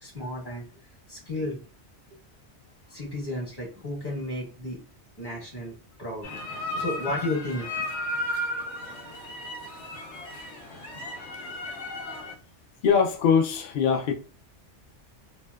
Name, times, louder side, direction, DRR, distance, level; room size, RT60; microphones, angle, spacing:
voice 1, 0.0-0.6 1.1-1.6 2.9-4.8 5.2-6.3 6.7-7.8, left 1 dB, 20° left, 1.1 m, -33 dB
sound 1, 6.2-12.3, left 1 dB, 80° left, 1.0 m, -34 dB
voice 2, 12.8-14.1, left 6 dB, 60° left, 0.6 m, -22 dB
2.7 x 2.0 x 2.2 m
omnidirectional pair, 1.2 m